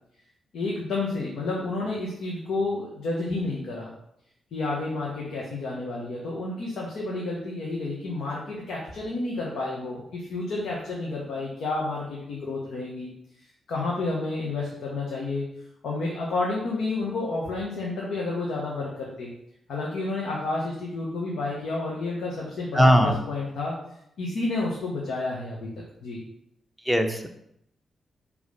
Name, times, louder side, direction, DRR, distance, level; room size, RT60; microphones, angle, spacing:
voice 1, 0.5-3.9 4.5-13.1 13.7-15.5 15.8-19.3 19.7-23.8 24.2-25.7 26.0-26.2, left 2 dB, 80° left, -4 dB, 1.3 m, -30 dB
voice 2, 22.7-23.2 26.8-27.3, equal, 5° left, 5 dB, 0.9 m, -19 dB
5.3 x 3.4 x 5.4 m, 0.76 s
supercardioid pair, 55°, 0 cm